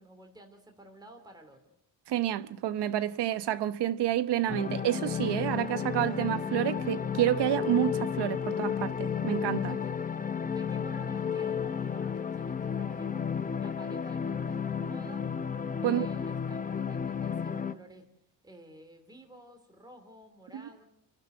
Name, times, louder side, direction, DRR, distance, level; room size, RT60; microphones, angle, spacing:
voice 1, 0.0-1.6 9.7-9.9 10.5-15.2 15.8-18.0 18.4-20.8, right 1 dB, 10° right, 2.9 m, -53 dB
voice 2, 2.1-9.8 15.8-16.1 20.5-20.6, right 12 dB, 70° right, 1.1 m, -29 dB
sound 1, 4.5-17.7, left 7 dB, 20° left, 0.8 m, -32 dB
29.5 x 12.0 x 7.8 m
cardioid pair, 125°, 43 cm